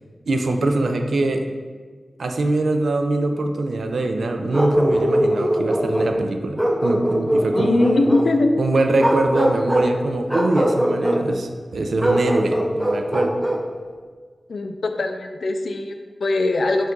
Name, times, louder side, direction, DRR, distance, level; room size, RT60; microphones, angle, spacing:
voice 1, 0.3-1.5 2.2-8.1 8.6-13.4, right 2 dB, 85° right, 5 dB, 0.3 m, -23 dB
Bark, 4.5-6.1 6.6-8.3 9.0-9.9 10.3-11.2 12.0-13.7, equal, 5° right, 0.5 m, -21 dB
voice 2, 7.5-8.5 14.5-16.9, left 2 dB, 75° left, 6 dB, 0.3 m, -21 dB
4.5 x 2.4 x 3.7 m, 1.5 s
wide cardioid pair, 70°, 0 cm